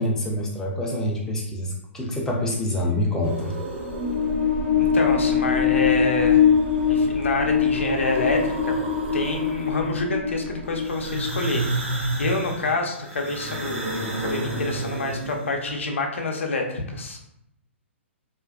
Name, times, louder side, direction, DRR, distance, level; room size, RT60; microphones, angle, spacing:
voice 1, 0.0-3.6, left 1 dB, 10° left, -2 dB, 0.5 m, -26 dB
sound 1, 3.2-4.5 6.2-7.1 7.5-10.0 10.8-15.7, right 2 dB, 75° right, 0.6 m, -31 dB
sound 2, 3.8-11.5, left 6 dB, 40° right, 0.9 m, -22 dB
voice 2, 4.8-6.4 6.9-8.8 9.1-17.2, left 3 dB, 75° left, 2 dB, 0.5 m, -27 dB
2.4 x 2.2 x 2.3 m, 0.79 s
figure-of-eight pair, 125°, 7 cm